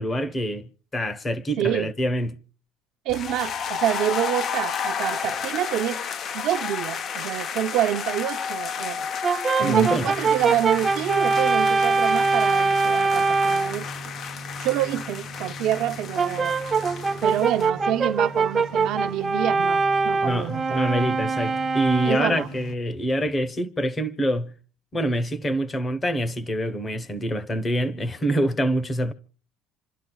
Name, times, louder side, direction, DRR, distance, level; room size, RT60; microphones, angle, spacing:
voice 1, 0.0-2.4 9.6-10.1 20.2-24.5 24.9-29.1, equal, 15° left, 1.0 m, -26 dB
voice 2, 1.6-1.9 3.0-6.0 6.3-9.1 9.6-13.9 14.6-16.6 17.2-20.8 22.0-22.5, right 12 dB, 60° right, 0.8 m, -27 dB
sound 1, 3.1-17.7, left 7 dB, 35° left, 0.6 m, -32 dB
Brass instrument, 9.2-13.8 16.2-22.5, right 4 dB, 20° right, 0.7 m, -23 dB
sound 2, 9.7-22.7, equal, 55° left, 1.4 m, -40 dB
28.0 x 11.5 x 2.3 m
cardioid pair, 165°, 0 cm